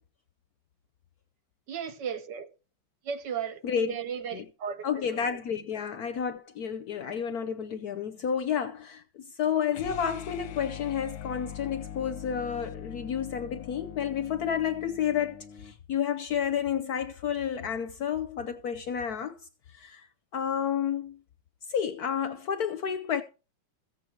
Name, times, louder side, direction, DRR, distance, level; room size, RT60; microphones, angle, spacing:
voice 1, 1.7-2.5 3.0-5.3, right 7 dB, 60° right, 1.5 m, -36 dB
voice 2, 3.6-4.0 4.3-4.4 4.8-9.0 9.4-15.4 15.6-19.3 19.8-20.0 20.3-21.2 21.7-23.2, left 8 dB, 65° left, 1.0 m, -30 dB
sound 1, 9.7-15.8, left 9 dB, 90° left, 1.7 m, -42 dB
14.5 x 8.1 x 4.5 m
omnidirectional pair, 2.2 m